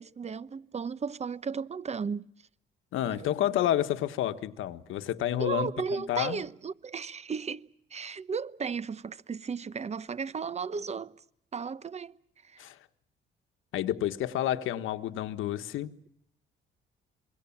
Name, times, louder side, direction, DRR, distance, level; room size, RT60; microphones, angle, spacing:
voice 1, 0.0-2.3 3.0-3.3 5.4-11.1 11.5-12.6, right 5 dB, 35° right, 0.9 m, -35 dB
voice 2, 2.9-6.4 12.6-12.8 13.7-15.9, left 12 dB, 85° left, 1.4 m, -30 dB
27.0 x 23.0 x 7.3 m
cardioid pair, 90°, 20 cm